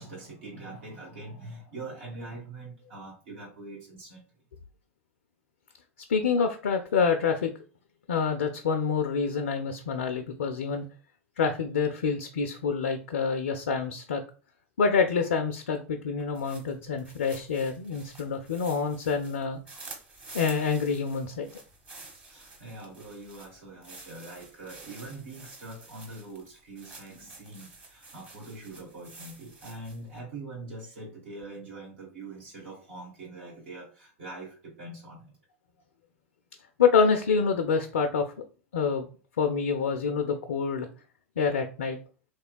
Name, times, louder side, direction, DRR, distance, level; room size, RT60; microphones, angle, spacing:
voice 1, 0.0-4.2 22.2-35.3, right 2 dB, 65° right, -5 dB, 1.2 m, -43 dB
voice 2, 6.1-7.5 8.1-10.9 11.4-14.2 14.8-19.6 20.3-21.5 36.8-38.3 38.7-39.1 39.4-40.9 41.4-42.0, left 5 dB, 65° left, 6 dB, 0.4 m, -27 dB
sound 1, 16.2-30.2, right 3 dB, 20° right, 0.9 m, -49 dB
3.2 x 2.9 x 2.2 m, 0.37 s
figure-of-eight pair, 85°, 7 cm